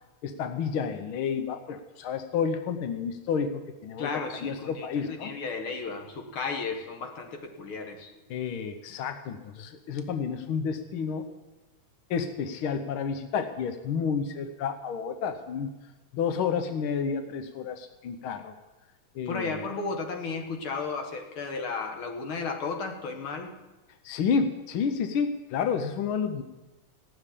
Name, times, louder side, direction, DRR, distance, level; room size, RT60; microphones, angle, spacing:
voice 1, 0.2-5.3 8.3-11.3 12.1-15.7 16.1-18.5 19.1-19.6 24.0-26.4, left 6 dB, 75° left, 8 dB, 1.2 m, -30 dB
voice 2, 4.0-8.1 19.3-23.5, left 4 dB, 50° left, 4 dB, 2.0 m, -34 dB
17.0 x 7.0 x 9.9 m, 1.1 s
omnidirectional pair, 3.5 m